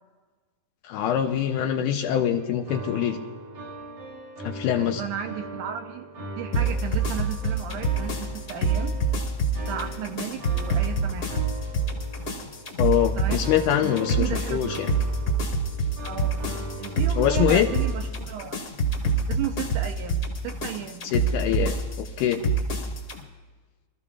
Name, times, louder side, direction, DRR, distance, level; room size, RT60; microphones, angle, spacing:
voice 1, 0.8-3.2 4.4-5.0 12.8-14.9 17.2-17.7 21.0-22.4, left 10 dB, 80° left, 5 dB, 1.9 m, -24 dB
sound 1, 2.4-17.9, right 1 dB, 55° right, 4.4 m, -40 dB
voice 2, 4.8-6.1 6.4-9.0 9.6-11.4 13.2-13.4 13.8-14.8 16.0-16.4 16.8-18.6 19.3-21.1, right 10 dB, 75° right, 5 dB, 2.1 m, -34 dB
sound 2, 6.5-23.2, right 2 dB, 40° left, 1.3 m, -26 dB
25.0 x 14.0 x 2.4 m, 1.4 s
omnidirectional pair, 4.1 m